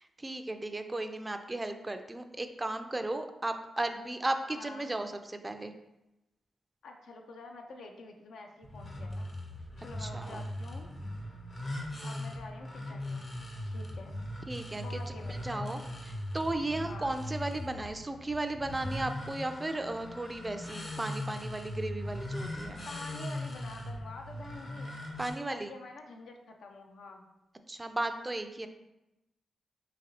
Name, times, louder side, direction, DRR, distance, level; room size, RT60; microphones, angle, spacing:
voice 1, 0.0-5.7 10.0-10.4 14.5-22.8 25.2-25.7 27.7-28.7, right 2 dB, 25° right, 7 dB, 0.3 m, -35 dB
voice 2, 4.5-4.9 6.8-9.3 9.8-10.9 12.0-13.3 13.6-14.2 14.8-15.8 16.9-17.2 22.9-24.9 25.5-27.2, left 3 dB, 80° left, 3 dB, 0.5 m, -47 dB
sound 1, 8.6-25.3, left 1 dB, 50° left, 0.8 m, -39 dB
4.0 x 2.8 x 2.7 m, 0.93 s
cardioid pair, 55°, 0 cm